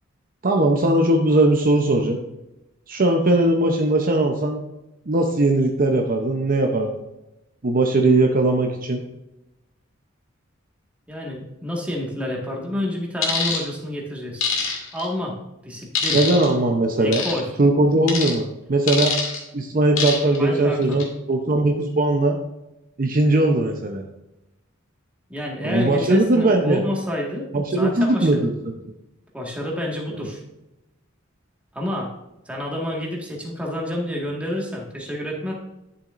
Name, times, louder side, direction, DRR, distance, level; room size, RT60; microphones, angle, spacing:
voice 1, 0.4-2.2 2.9-4.6 5.1-6.9 7.6-9.0 16.1-17.2 17.6-19.1 19.5-22.4 23.0-24.0 25.6-26.8 27.5-28.5 30.1-30.3, right 2 dB, 45° right, 3 dB, 0.7 m, -19 dB
voice 2, 11.1-14.4 14.9-15.4 15.6-16.2 17.0-17.5 20.4-21.0 25.3-27.5 27.8-28.4 29.3-30.4 31.7-32.1 32.5-35.5, left 1 dB, 5° right, -2 dB, 1.7 m, -28 dB
sound 1, 13.2-13.6 14.4-15.1 16.0-16.5 17.1-17.4 18.1-18.3 18.9-19.4 20.0-20.4 20.8-21.0, left 5 dB, 70° left, 2.2 m, -24 dB
11.5 x 7.0 x 2.6 m, 0.94 s
head